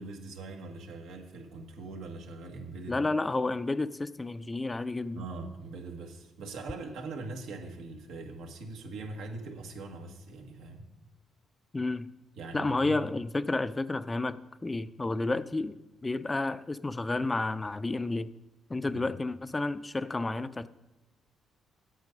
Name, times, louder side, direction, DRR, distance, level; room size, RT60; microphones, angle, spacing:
voice 1, 0.0-3.0 5.1-10.9 12.3-13.1 18.9-19.0, right 3 dB, 90° right, 3 dB, 1.5 m, -42 dB
voice 2, 2.9-5.2 11.7-12.1 12.5-15.7 16.0-18.3 18.7-20.7, left 2 dB, 20° left, 14 dB, 0.4 m, -31 dB
8.2 x 8.2 x 5.2 m, 1.1 s
cardioid pair, 90°, 0 cm